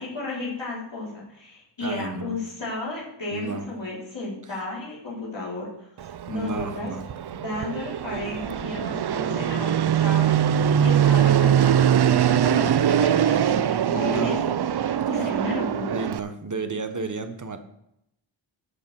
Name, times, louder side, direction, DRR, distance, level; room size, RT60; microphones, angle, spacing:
voice 1, 0.0-6.9 7.4-14.4 14.8-16.0, left 2 dB, 65° left, -6 dB, 3.4 m, -33 dB
voice 2, 1.8-2.4 3.3-3.7 6.3-7.0 13.9-14.4 15.9-17.6, right 3 dB, 40° right, 8 dB, 1.1 m, -31 dB
Fixed-wing aircraft airplane, 6.0-16.2, right 9 dB, 55° right, 0.5 m, -22 dB
10.5 x 5.1 x 7.1 m, 0.80 s
wide cardioid pair, 85°, 48 cm